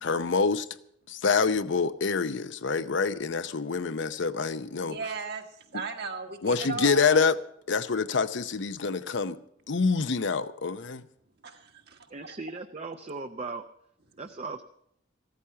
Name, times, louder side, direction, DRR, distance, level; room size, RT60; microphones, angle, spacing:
voice 1, 0.0-0.7 1.1-5.0 6.4-7.3 7.7-9.4 9.7-11.0, left 4 dB, 65° left, 0.7 m, -26 dB
voice 2, 4.8-5.4 5.7-7.2 11.4-12.4, right 3 dB, 55° right, 1.6 m, -36 dB
voice 3, 12.1-13.6 14.2-14.6, right 3 dB, 35° right, 0.6 m, -37 dB
15.0 x 13.5 x 5.7 m
head